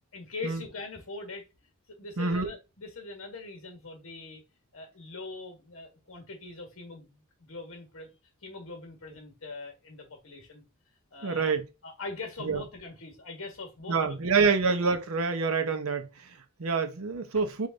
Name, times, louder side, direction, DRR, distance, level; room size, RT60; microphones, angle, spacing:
voice 1, 0.1-1.4 1.9-4.4 4.7-8.1 8.4-10.6 11.1-11.5 11.8-14.5, left 3 dB, 70° left, 1.6 m, -42 dB
voice 2, 2.2-2.5 11.2-11.6 12.4-12.6 13.9-17.7, right 4 dB, 75° right, 0.8 m, -27 dB
5.0 x 2.6 x 4.0 m
head